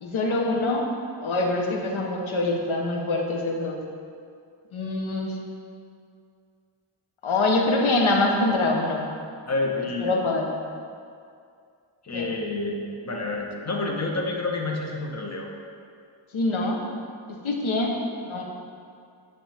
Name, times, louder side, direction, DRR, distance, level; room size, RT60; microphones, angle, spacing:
voice 1, 0.0-0.9 1.2-3.8 4.7-5.4 7.2-9.1 10.0-10.6 12.1-12.3 16.3-16.8 17.3-18.0 18.3-18.4, left 2 dB, 70° left, 0 dB, 1.0 m, -24 dB
voice 2, 9.5-10.2 12.0-15.5, left 2 dB, 30° left, 0 dB, 0.9 m, -29 dB
8.7 x 3.5 x 3.4 m, 2.3 s
cardioid pair, 70°, 49 cm